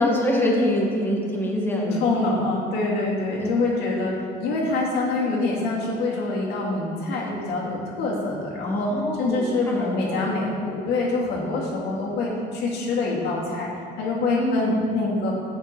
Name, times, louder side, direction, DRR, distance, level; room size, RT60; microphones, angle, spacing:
voice 1, 0.0-2.0 8.6-10.3 14.4-14.8, left 1 dB, 15° left, -2 dB, 1.8 m, -25 dB
voice 2, 1.7-4.1 4.4-8.9 9.2-13.7 14.0-15.3, left 3 dB, 80° left, -4 dB, 2.4 m, -25 dB
11.0 x 7.9 x 3.2 m, 2.5 s
cardioid pair, 110°, 17 cm